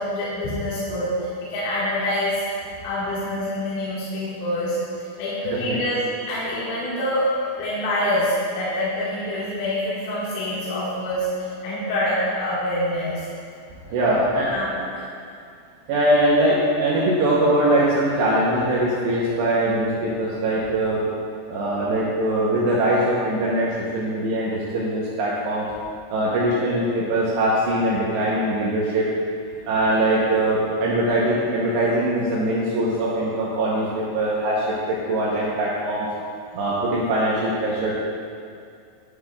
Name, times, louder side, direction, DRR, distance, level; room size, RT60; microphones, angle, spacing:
voice 1, 0.0-2.4 2.8-4.8 5.2-6.0 6.3-7.3 7.6-13.2 13.8-13.9 14.4-15.0 35.1-35.4, left 1 dB, 70° left, -10 dB, 4.4 m, -26 dB
voice 2, 13.9-14.5 15.9-21.0 21.5-25.6 26.1-29.1 29.7-36.1 36.5-37.9, right 1 dB, 75° right, -6 dB, 2.7 m, -22 dB
12.0 x 9.4 x 2.4 m, 2.3 s
omnidirectional pair, 6.0 m